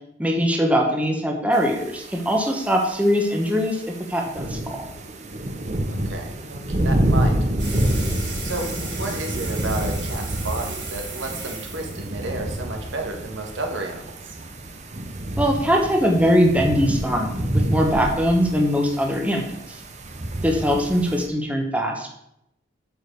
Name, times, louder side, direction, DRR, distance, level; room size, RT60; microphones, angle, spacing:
voice 1, 0.2-4.9 15.4-19.8 20.4-22.1, equal, 5° right, 1 dB, 1.2 m, -21 dB
sound 1, 1.5-21.3, right 1 dB, 35° right, 0.9 m, -28 dB
voice 2, 5.9-7.5 8.4-14.4, right 2 dB, 85° right, 2 dB, 1.8 m, -32 dB
sound 2, 7.6-12.9, right 4 dB, 70° right, 3.4 m, -36 dB
8.2 x 5.2 x 6.6 m, 0.78 s
head